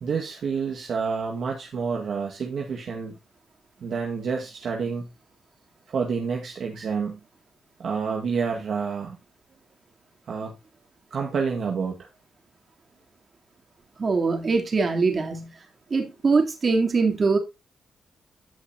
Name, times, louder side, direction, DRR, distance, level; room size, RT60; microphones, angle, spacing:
voice 1, 0.0-3.2 3.8-5.1 5.9-7.2 7.8-9.2 10.3-10.5 11.1-12.1, right 5 dB, 60° right, 1.8 m, -28 dB
voice 2, 14.0-15.5 15.9-17.4, right 4 dB, 40° right, 3.2 m, -22 dB
16.0 x 5.5 x 2.8 m
cardioid pair, 75°, 0 cm